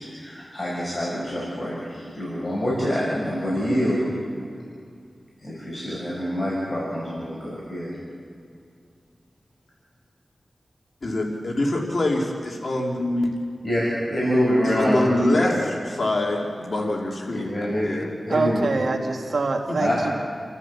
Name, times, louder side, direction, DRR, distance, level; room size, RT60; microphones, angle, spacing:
voice 1, 0.0-4.2 5.4-7.9 13.6-15.0 15.3-15.5 17.3-17.9 18.3-18.7 19.8-20.0, equal, 35° left, -6 dB, 6.6 m, -25 dB
voice 2, 11.0-13.4 14.6-18.1 19.7-19.8, left 1 dB, 55° left, -1 dB, 2.8 m, -25 dB
voice 3, 18.3-20.1, right 3 dB, 80° right, 1 dB, 2.0 m, -24 dB
30.0 x 14.0 x 7.3 m, 2.3 s
wide cardioid pair, 90°, 0 cm